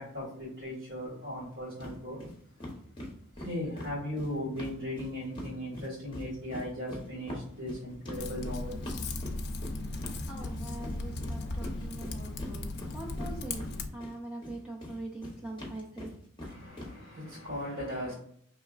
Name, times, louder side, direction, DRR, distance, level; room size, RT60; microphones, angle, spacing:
voice 1, 0.0-2.2 3.4-8.7 16.5-18.1, left 1 dB, 70° right, 1.6 m, -37 dB
sound 1, 1.8-1.9 2.2-2.3 2.6-5.5 5.7-14.1 14.4-16.9, left 1 dB, 25° left, 0.8 m, -42 dB
Typing, 8.1-13.9, left 2 dB, 55° left, 0.4 m, -37 dB
voice 2, 10.3-13.6 13.9-16.1, right 2 dB, 5° right, 0.5 m, -42 dB
4.9 x 3.0 x 2.4 m
head